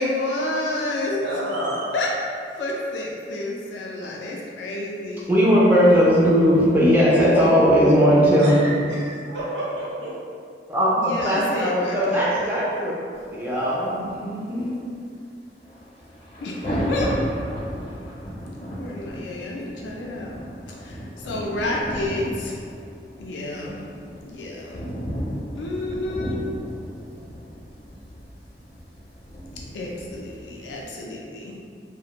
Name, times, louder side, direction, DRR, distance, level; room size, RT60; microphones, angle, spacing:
voice 1, 0.0-1.4 1.9-2.1 2.6-5.3 11.0-12.5 16.4-16.6 16.9-17.1 18.8-20.4 20.7-22.6 23.2-23.8 24.2-24.8 25.6-26.4 29.7-31.5, left 2 dB, 85° left, -2 dB, 0.4 m, -29 dB
voice 2, 1.2-1.9 8.4-8.5 8.8-10.1, right 1 dB, 85° right, -8 dB, 0.7 m, -30 dB
voice 3, 5.3-8.7 10.7-13.0 13.3-14.8, equal, 10° right, -7 dB, 0.3 m, -18 dB
sound 1, 15.6-30.9, equal, 35° left, 0.6 m, -34 dB
2.4 x 2.1 x 2.8 m, 2.3 s
head